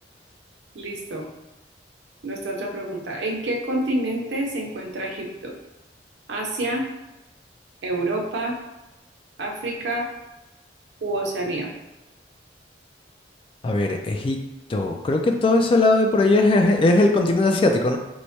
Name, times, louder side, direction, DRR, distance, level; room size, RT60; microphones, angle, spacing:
voice 1, 0.7-1.3 2.2-5.5 6.3-6.9 7.8-8.6 9.4-10.1 11.0-11.7, right 1 dB, 85° right, -1 dB, 0.7 m, -28 dB
voice 2, 13.6-14.4 14.7-18.0, left 2 dB, 30° left, 3 dB, 0.3 m, -19 dB
4.5 x 2.1 x 2.7 m, 0.99 s
head